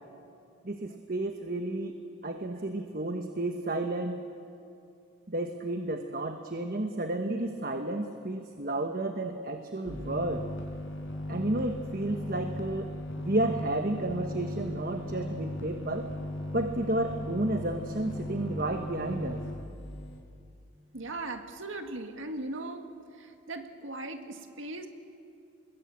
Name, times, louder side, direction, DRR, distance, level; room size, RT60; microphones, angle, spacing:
voice 1, 0.6-2.0 2.2-4.2 5.3-10.5 11.3-16.1 16.5-19.4, right 1 dB, 50° right, 5 dB, 1.2 m, -32 dB
sound 1, 9.9-20.2, left 1 dB, 80° left, 4.6 m, -37 dB
voice 2, 20.9-22.9 23.2-24.9, right 2 dB, 90° right, 5 dB, 2.0 m, -38 dB
26.5 x 21.0 x 8.5 m, 2.5 s
head